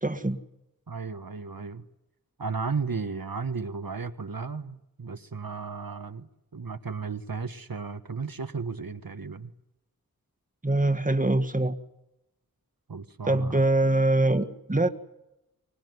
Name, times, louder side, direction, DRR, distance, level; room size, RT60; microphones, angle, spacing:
voice 1, 0.0-0.4 10.6-11.7 13.3-14.9, right 2 dB, 25° right, 9 dB, 1.8 m, -23 dB
voice 2, 0.9-1.8 2.4-9.5 12.9-13.6, right 5 dB, 75° right, 10 dB, 1.4 m, -34 dB
24.5 x 20.0 x 9.5 m, 0.90 s
wide cardioid pair, 55°, 35 cm